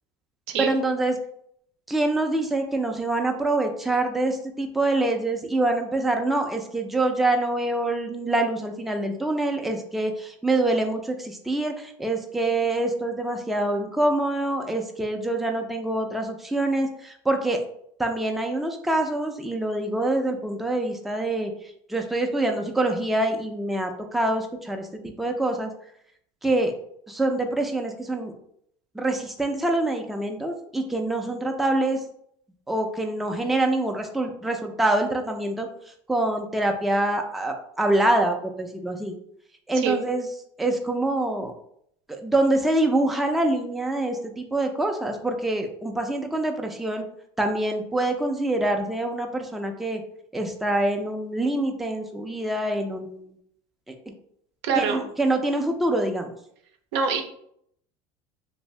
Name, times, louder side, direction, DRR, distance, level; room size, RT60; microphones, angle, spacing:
voice 1, 0.6-1.2 1.9-17.6 18.0-21.5 21.9-25.7 26.4-26.7 27.1-28.3 28.9-32.0 32.7-35.7 36.1-39.1 39.7-40.3 40.6-41.5 42.1-47.0 47.4-50.0 50.3-53.3 54.8-56.3, right 2 dB, ahead, 3 dB, 0.4 m, -25 dB
voice 2, 54.6-55.0 56.9-57.2, right 6 dB, 80° right, 5 dB, 0.6 m, -25 dB
2.6 x 2.6 x 3.1 m, 0.70 s
supercardioid pair, 100°, 14 cm